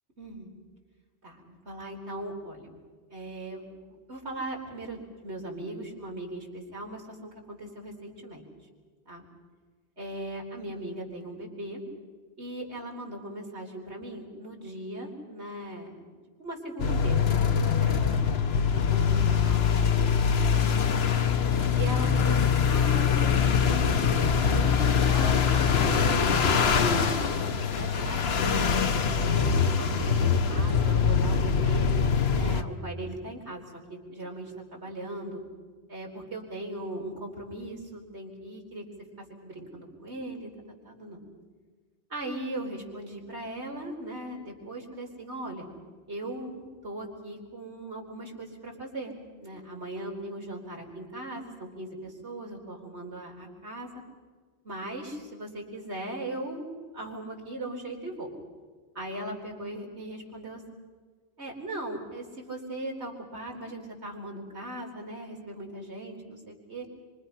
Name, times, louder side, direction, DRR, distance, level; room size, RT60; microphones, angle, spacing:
voice 1, 0.2-0.5 1.2-2.7 3.1-3.6 3.9-8.4 9.1-9.2 10.0-11.8 12.4-15.9 16.4-17.2 17.5-18.3 18.9-20.1 21.7-24.6 25.1-26.5 26.9-31.9 32.3-33.6 33.9-35.4 35.9-38.8 39.2-40.5 40.8-41.2 42.1-45.7 46.1-53.9 54.6-58.3 58.9-60.6 61.4-66.9, right 1 dB, 85° right, 0 dB, 4.5 m, -39 dB
sound 1, 16.8-32.6, left 6 dB, 70° left, 1.2 m, -23 dB
27.0 x 25.5 x 5.7 m, 1.5 s
omnidirectional pair, 1.1 m